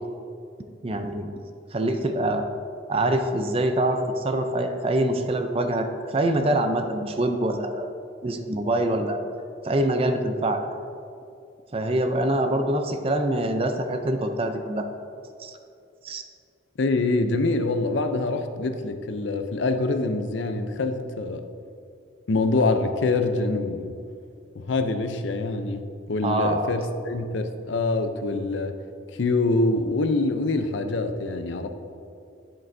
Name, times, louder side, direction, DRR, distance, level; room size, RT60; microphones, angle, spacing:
voice 1, 0.8-1.3 1.7-2.5 2.9-7.9 8.2-9.2 9.6-10.6 11.7-14.9 15.4-15.6 16.0-16.2 26.2-26.7, right 1 dB, 30° right, 6 dB, 0.5 m, -25 dB
voice 2, 16.8-21.4 22.3-24.0 24.5-25.8 26.1-28.7 29.2-31.7, left 3 dB, 65° left, 8 dB, 0.5 m, -25 dB
10.0 x 7.6 x 2.7 m, 2.5 s
head